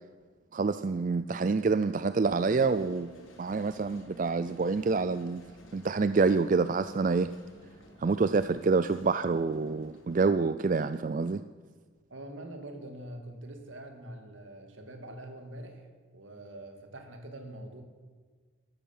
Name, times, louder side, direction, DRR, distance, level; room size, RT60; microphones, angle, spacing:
voice 1, 0.5-5.4 5.7-7.3 8.0-11.4, right 4 dB, 40° right, 12 dB, 0.4 m, -27 dB
sound 1, 2.3-10.3, left 1 dB, 85° left, 4.2 m, -54 dB
voice 2, 12.1-15.9 16.1-17.8, right 1 dB, 80° right, 5 dB, 2.4 m, -44 dB
13.5 x 12.5 x 7.3 m, 1.5 s
head